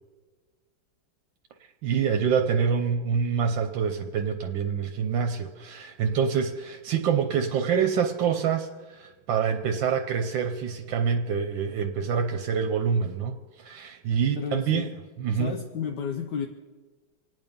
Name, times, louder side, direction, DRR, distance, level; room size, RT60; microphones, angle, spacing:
voice 1, 1.8-14.9 15.2-15.5, right 6 dB, 80° right, 5 dB, 1.5 m, -26 dB
voice 2, 14.4-14.9 15.3-16.5, left 7 dB, 70° left, 5 dB, 1.4 m, -32 dB
26.5 x 9.2 x 5.3 m, 1.4 s
omnidirectional pair, 2.0 m